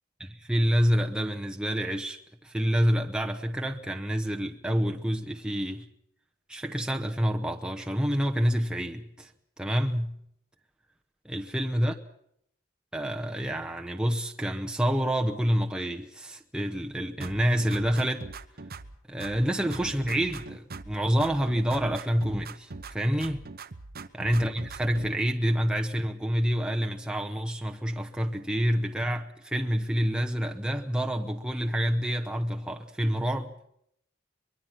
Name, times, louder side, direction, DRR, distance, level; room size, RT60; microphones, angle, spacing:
voice 1, 0.2-5.9 6.5-9.3 9.6-10.2 11.2-12.0 12.9-18.3 19.1-23.5 24.1-33.7, equal, 5° right, 0.9 m, -28 dB
sound 1, 17.2-19.0 19.2-21.0 21.2-23.0 23.2-25.1, right 3 dB, 50° right, 1.0 m, -42 dB
23.5 x 21.5 x 5.9 m
head